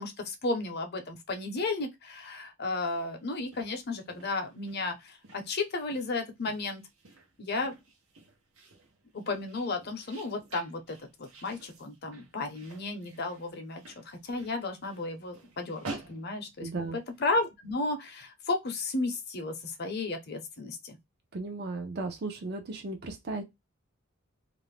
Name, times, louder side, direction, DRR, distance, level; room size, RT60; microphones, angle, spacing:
voice 1, 0.0-6.8 7.4-7.8 9.1-21.0, left 3 dB, 50° left, 0.6 m, -34 dB
sound 1, 2.8-17.2, right 3 dB, 80° right, 0.8 m, -50 dB
voice 2, 16.6-17.0 21.3-23.4, right 3 dB, 50° right, 0.5 m, -35 dB
2.5 x 2.1 x 3.2 m
head